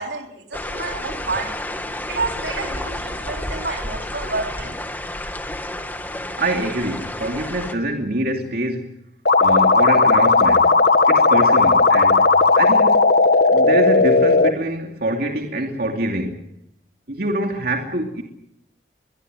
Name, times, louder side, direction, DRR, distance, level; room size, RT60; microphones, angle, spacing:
voice 1, 0.0-1.6 2.1-4.8, right 3 dB, 75° right, 3.7 m, -29 dB
sound 1, 0.5-7.7, left 1 dB, 10° left, 1.9 m, -30 dB
voice 2, 6.4-8.9 9.4-10.7 11.1-12.3 12.5-13.0 13.4-16.4 17.1-18.2, right 1 dB, 55° right, 2.8 m, -25 dB
sound 2, 9.3-14.5, left 3 dB, 60° left, 1.5 m, -15 dB
23.5 x 22.5 x 7.9 m
head